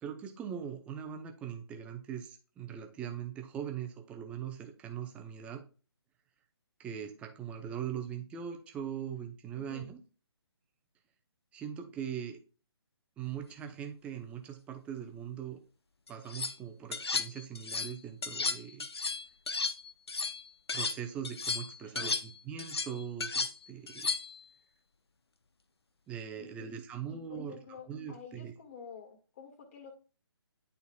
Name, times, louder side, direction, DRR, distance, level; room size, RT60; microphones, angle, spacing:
voice 1, 0.0-5.6 6.8-10.0 11.5-12.4 13.2-15.6 16.1-18.9 20.7-24.1 26.1-27.6 27.9-28.5, right 8 dB, 10° right, 5 dB, 0.6 m, -41 dB
voice 2, 9.5-9.9 21.8-22.2 26.4-26.7 27.1-29.9, left 6 dB, 30° left, 4 dB, 1.8 m, -50 dB
sound 1, 16.1-16.5 16.9-17.9 18.2-21.0 21.2-24.4, left 4 dB, 70° left, 0.7 m, -34 dB
11.0 x 4.0 x 2.3 m, 0.36 s
figure-of-eight pair, 140°, 14 cm